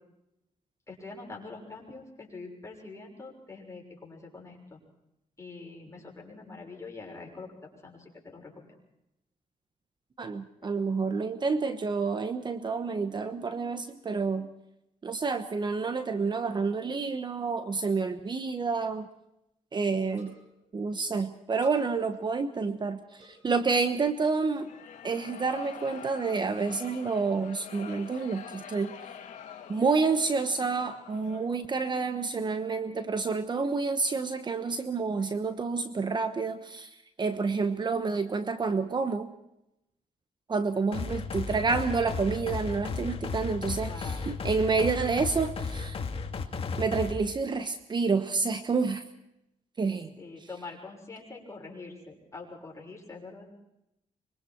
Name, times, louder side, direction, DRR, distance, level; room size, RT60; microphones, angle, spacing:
voice 1, 0.9-4.8 5.4-8.7 43.9-44.3 50.2-53.5, left 3 dB, 25° left, 0 dB, 6.5 m, -44 dB
voice 2, 10.2-14.5 15.0-19.1 19.7-20.3 20.7-24.7 25.0-28.9 29.7-36.9 37.2-39.3 40.5-46.0 46.8-49.0 49.8-50.1, right 4 dB, 35° right, 9 dB, 1.1 m, -29 dB
sound 1, 18.4-18.5 18.7-18.8 18.9-19.0 20.1-20.6 21.6-22.4 23.2-23.5 24.2-24.5 25.2-25.4 26.3-26.6, equal, 70° right, 6.9 m, -57 dB
sound 2, 24.5-31.7, left 8 dB, 80° left, 2.5 m, -46 dB
sound 3, 40.9-47.1, left 4 dB, 50° left, 2.4 m, -34 dB
25.0 x 23.0 x 4.6 m, 0.85 s
cardioid pair, 110°, 13 cm